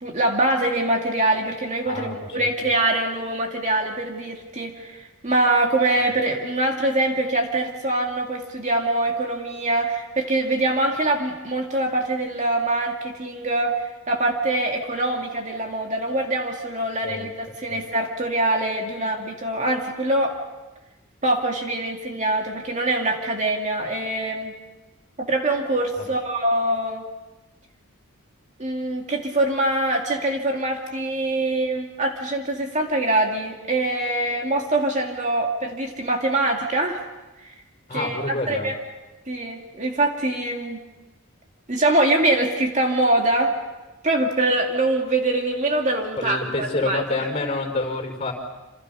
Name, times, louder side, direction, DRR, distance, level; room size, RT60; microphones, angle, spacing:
voice 1, 0.0-20.3 21.2-24.6 25.2-27.0 28.6-37.0 37.4-37.5 37.9-38.2 38.5-38.7 39.3-40.8 41.7-43.5 44.0-47.0, right 2 dB, 35° right, 1 dB, 2.3 m, -24 dB
voice 2, 1.8-2.5 17.0-17.3 17.7-17.8 26.0-26.1 37.9-38.7 46.2-48.3, left 2 dB, 30° left, 4 dB, 5.0 m, -28 dB
28.0 x 27.5 x 5.5 m, 1.1 s
head